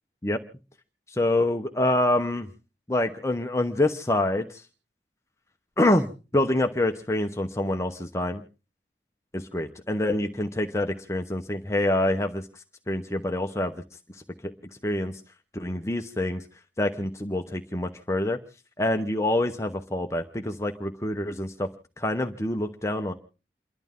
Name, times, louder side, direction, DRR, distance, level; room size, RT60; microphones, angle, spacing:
voice 1, 1.1-2.5 2.9-4.6 5.8-6.1 6.3-8.4 9.3-13.7 14.8-15.2 15.5-16.4 16.8-18.4 18.8-21.7 22.0-23.1, left 1 dB, 15° left, 5 dB, 0.8 m, -26 dB
28.5 x 11.5 x 3.6 m, 0.34 s
head